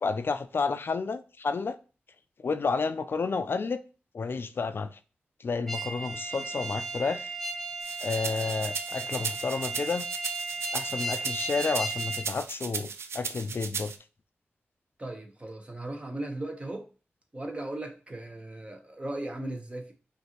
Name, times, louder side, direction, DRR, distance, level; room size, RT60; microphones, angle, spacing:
voice 1, 0.0-1.8 2.4-3.8 4.1-5.0 5.4-7.3 8.0-10.1 10.7-13.9, left 4 dB, 60° left, 0.3 m, -31 dB
sound 1, 5.7-12.3, right 3 dB, 10° left, 0.7 m, -35 dB
sound 2, 7.8-14.0, right 5 dB, 85° right, 0.4 m, -37 dB
voice 2, 15.0-16.9 17.3-19.9, right 1 dB, 30° right, 1.0 m, -37 dB
5.4 x 2.6 x 2.9 m
cardioid pair, 65°, 4 cm